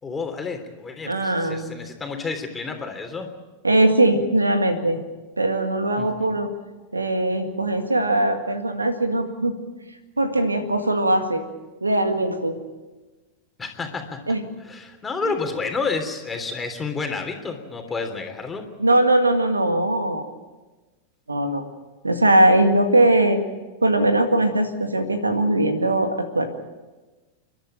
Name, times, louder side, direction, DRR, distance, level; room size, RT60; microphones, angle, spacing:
voice 1, 0.0-3.3 6.0-6.4 13.6-14.2 14.6-18.7, left 4 dB, 15° left, 5 dB, 3.3 m, -30 dB
voice 2, 1.0-1.8 3.6-5.0 5.4-6.5 6.9-9.6 10.2-11.4 11.8-12.6 14.3-14.5 15.2-15.3 18.8-20.3 21.3-21.6 22.0-23.4 23.8-26.5, right 1 dB, 80° right, 7 dB, 2.0 m, -20 dB
30.0 x 12.5 x 8.9 m, 1.2 s
figure-of-eight pair, 90°, 0 cm